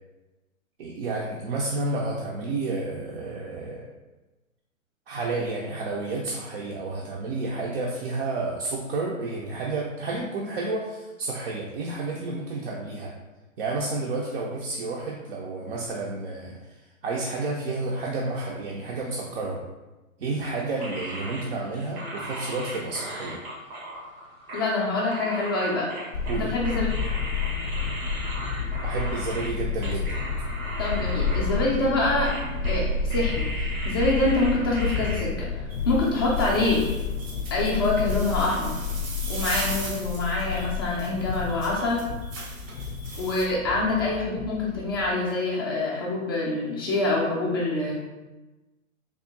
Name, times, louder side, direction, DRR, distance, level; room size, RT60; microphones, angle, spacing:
voice 1, 0.8-3.9 5.1-13.1 13.6-16.6 17.0-19.6 20.2-23.4 26.3-26.5 28.8-30.1, right 3 dB, 45° right, -2 dB, 0.5 m, -30 dB
sound 1, 20.8-29.5 29.8-32.0 32.2-32.8 33.1-35.2, right 1 dB, 90° right, 1.4 m, -37 dB
voice 2, 24.5-25.9 26.3-26.9 30.8-32.3 32.6-36.8 37.5-38.7 39.3-42.0 43.2-48.0, left 2 dB, 20° left, -6 dB, 0.4 m, -26 dB
sound 2, 26.1-45.1, left 5 dB, 80° left, 0.5 m, -30 dB
sound 3, 35.7-43.5, right 3 dB, 65° right, 0.9 m, -39 dB
3.5 x 2.0 x 3.9 m, 1.1 s
hypercardioid pair, 145°, 42 cm